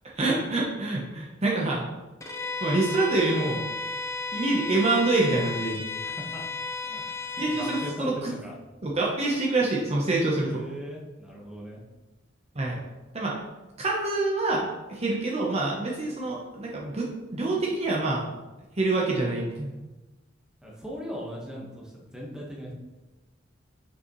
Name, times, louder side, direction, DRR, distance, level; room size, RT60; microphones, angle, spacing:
voice 1, 0.2-1.8 2.6-3.6 4.3-5.8 7.4-8.3 8.8-10.6 12.5-12.8 13.1-13.4 13.8-18.2 18.8-19.8, right 2 dB, 35° right, -3 dB, 0.8 m, -26 dB
Bowed string instrument, 2.2-8.0, left 3 dB, 15° left, 0.7 m, -34 dB
voice 2, 6.0-6.5 6.8-8.5 10.3-11.8 20.6-22.7, equal, 5° right, -3 dB, 1.2 m, -39 dB
6.2 x 5.4 x 3.1 m, 1.1 s
head